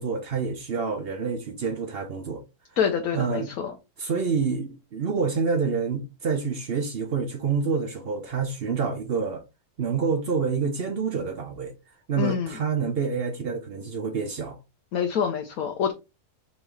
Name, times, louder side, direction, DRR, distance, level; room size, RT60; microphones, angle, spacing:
voice 1, 0.0-2.4 3.1-3.5 4.0-9.4 9.8-11.7 12.1-14.6, right 5 dB, 60° right, 0.6 m, -27 dB
voice 2, 2.8-3.7 12.2-12.6 14.9-15.9, left 7 dB, 65° left, 1.1 m, -26 dB
4.0 x 3.5 x 3.3 m
omnidirectional pair, 1.8 m